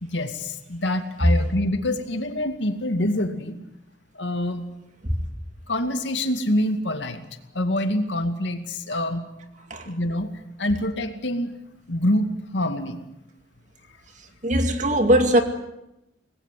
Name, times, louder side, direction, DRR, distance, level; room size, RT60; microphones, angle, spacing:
voice 1, 0.0-3.6 4.1-4.7 5.7-7.2 7.5-9.3 9.9-10.3 10.6-11.5 11.9-13.0, left 1 dB, 80° left, 2.3 m, -26 dB
voice 2, 14.4-15.4, right 1 dB, 40° right, 2.4 m, -19 dB
25.0 x 20.0 x 7.7 m
head